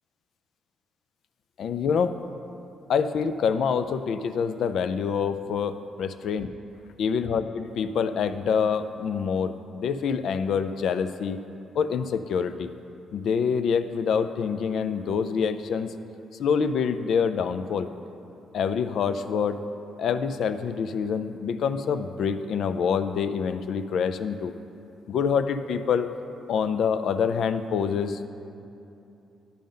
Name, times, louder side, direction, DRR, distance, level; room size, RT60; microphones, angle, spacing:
voice 1, 1.6-2.1 2.9-6.5 7.0-11.4 11.8-12.7 13.1-15.9 16.4-17.9 18.5-19.6 20.0-24.5 25.1-26.1 26.5-28.3, left 6 dB, 70° left, 10 dB, 0.3 m, -26 dB
10.5 x 3.8 x 5.2 m, 2.8 s
cardioid pair, 90°, 0 cm